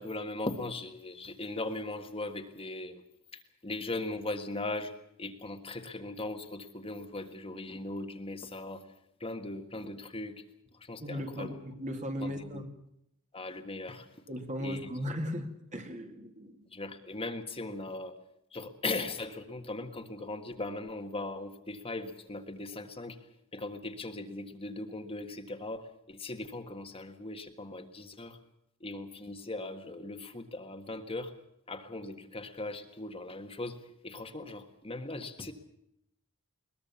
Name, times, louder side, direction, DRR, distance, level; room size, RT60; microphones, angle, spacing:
voice 1, 0.0-3.0 3.3-4.9 5.2-8.8 9.2-10.4 10.8-11.6 11.9-12.6 13.3-14.1 14.6-14.9 16.7-18.1 18.5-23.2 23.5-28.4 28.8-31.3 31.7-33.8 34.0-35.5, left 2 dB, 25° left, 6 dB, 1.7 m, -39 dB
voice 2, 11.0-12.7 14.3-16.6, equal, 35° right, 5 dB, 2.3 m, -37 dB
21.5 x 20.5 x 7.0 m, 0.77 s
head